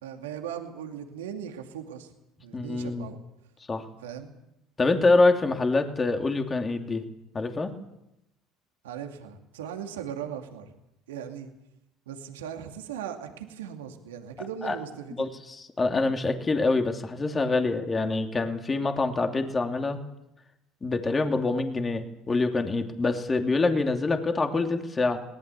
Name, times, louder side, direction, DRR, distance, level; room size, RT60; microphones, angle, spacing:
voice 1, 0.0-2.1 2.4-3.2 3.9-4.3 8.8-10.7 11.1-11.5 12.1-15.3, right 9 dB, 85° right, 4 dB, 2.6 m, -38 dB
voice 2, 2.5-3.1 3.7-3.9 4.8-7.0 7.3-7.7 14.6-14.8 15.2-20.0 20.8-25.2, left 3 dB, 25° left, 5 dB, 2.9 m, -25 dB
21.5 x 19.0 x 8.4 m, 0.86 s
hypercardioid pair, 70°, 0 cm